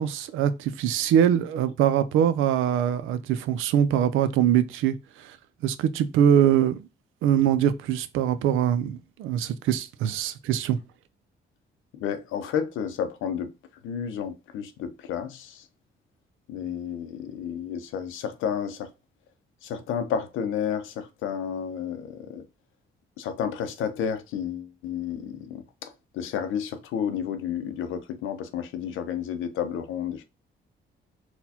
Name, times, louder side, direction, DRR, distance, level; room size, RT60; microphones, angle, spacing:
voice 1, 0.0-5.4 5.6-6.9 7.2-10.8, right 9 dB, 85° right, 0.4 m, -23 dB
voice 2, 12.0-13.5 13.8-15.6 16.5-18.9 19.6-22.4 23.2-25.6 26.1-30.2, left 8 dB, 85° left, 0.6 m, -31 dB
4.1 x 2.2 x 2.8 m
cardioid pair, 90°, 20 cm